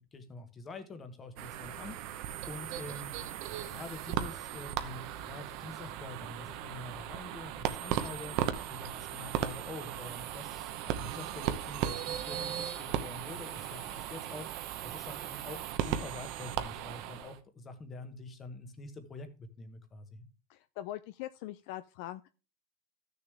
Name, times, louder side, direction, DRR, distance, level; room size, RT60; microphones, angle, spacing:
voice 1, 0.0-2.0 2.2-3.3 3.6-20.3, left 3 dB, 15° left, 9 dB, 1.2 m, -46 dB
sound 1, 1.4-17.4, right 11 dB, 45° right, 0.9 m, -37 dB
voice 2, 20.5-22.3, left 14 dB, 55° left, 13 dB, 0.4 m, -42 dB
14.0 x 6.7 x 3.4 m, 0.32 s
supercardioid pair, 175°, 0 cm